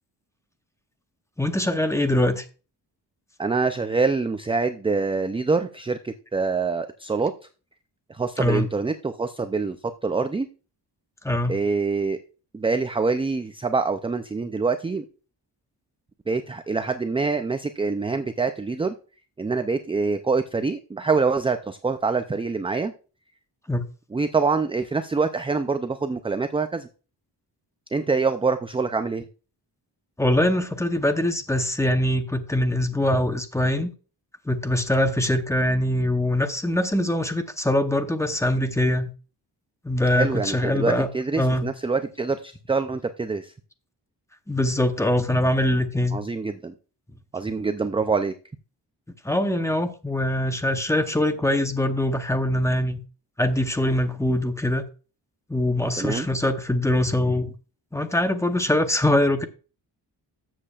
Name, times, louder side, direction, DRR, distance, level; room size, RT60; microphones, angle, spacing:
voice 1, 1.4-2.4 8.4-8.7 11.2-11.6 23.7-23.9 30.2-33.9 34.5-39.1 39.8-41.1 41.4-41.7 44.5-46.2 49.2-53.0 53.4-54.8 55.5-57.5 57.9-59.4, left 1 dB, 5° left, 0.8 m, -23 dB
voice 2, 3.4-7.3 8.1-9.8 10.0-10.5 11.5-12.2 12.5-15.0 16.3-18.9 19.4-22.9 24.1-26.9 27.9-29.3 40.1-43.5 46.1-46.7 47.3-48.3 56.0-56.3, right 4 dB, 15° right, 0.4 m, -25 dB
13.0 x 7.6 x 2.4 m
wide cardioid pair, 145°, 42 cm